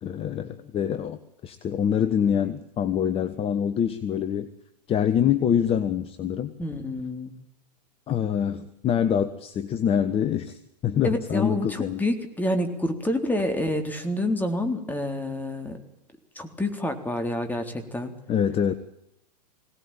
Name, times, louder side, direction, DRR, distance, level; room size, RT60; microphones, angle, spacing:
voice 1, 0.0-4.5 4.9-6.5 8.1-12.0 18.3-18.7, left 8 dB, 25° left, 12 dB, 1.4 m, -25 dB
voice 2, 6.6-7.3 11.0-15.8 16.4-18.1, left 1 dB, 10° left, 6 dB, 3.7 m, -28 dB
23.0 x 18.5 x 9.0 m, 0.81 s
hypercardioid pair, 105°, 21 cm